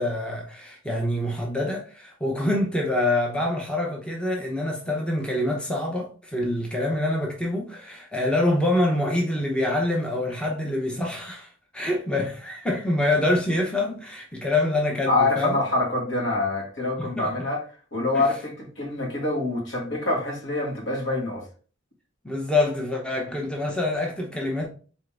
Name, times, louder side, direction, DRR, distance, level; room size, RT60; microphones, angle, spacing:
voice 1, 0.0-11.5 11.7-15.6 17.2-17.3 18.1-18.2 22.2-24.7, left 1 dB, 5° left, 0.7 m, -26 dB
voice 2, 15.1-17.6 17.9-21.4, left 2 dB, 65° left, 1.8 m, -25 dB
4.1 x 3.7 x 3.3 m
head